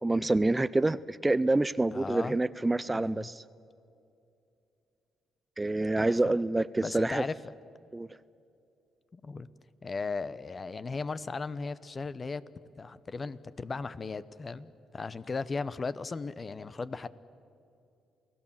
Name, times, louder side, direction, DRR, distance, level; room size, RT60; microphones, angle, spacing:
voice 1, 0.0-3.4 5.6-7.2 7.9-8.1, right 2 dB, 15° right, 17 dB, 0.4 m, -27 dB
voice 2, 1.9-2.4 2.9-3.3 6.0-6.3 6.8-7.4 9.1-9.5 9.8-12.4 12.8-17.1, left 4 dB, 35° left, 16 dB, 0.8 m, -36 dB
28.5 x 18.0 x 7.3 m, 2.7 s
cardioid pair, 90°, 0 cm